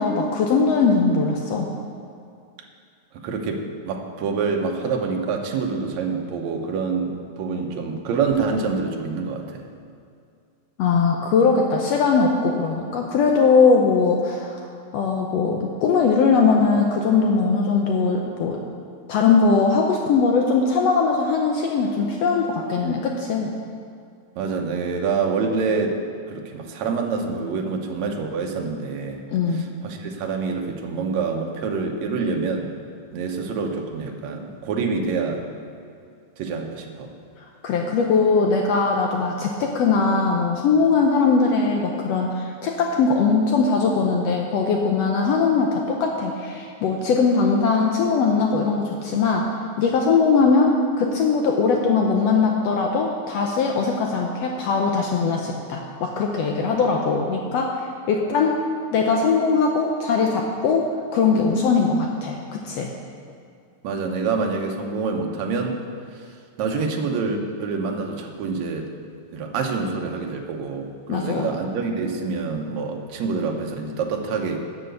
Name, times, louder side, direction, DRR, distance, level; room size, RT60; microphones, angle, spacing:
voice 1, 0.0-1.7 10.8-14.6 14.9-18.6 19.1-23.5 29.3-29.7 37.6-49.5 49.8-57.7 58.1-58.6 58.9-62.9 71.1-71.5, left 4 dB, 70° left, 1 dB, 1.7 m, -20 dB
voice 2, 3.1-9.6 24.4-26.0 26.3-29.2 29.5-32.7 33.1-35.4 36.4-37.1 63.8-65.8 66.1-66.2 66.6-68.9 69.3-74.6, right 4 dB, 70° right, 2 dB, 2.2 m, -26 dB
12.0 x 5.6 x 8.1 m, 2.3 s
omnidirectional pair, 3.3 m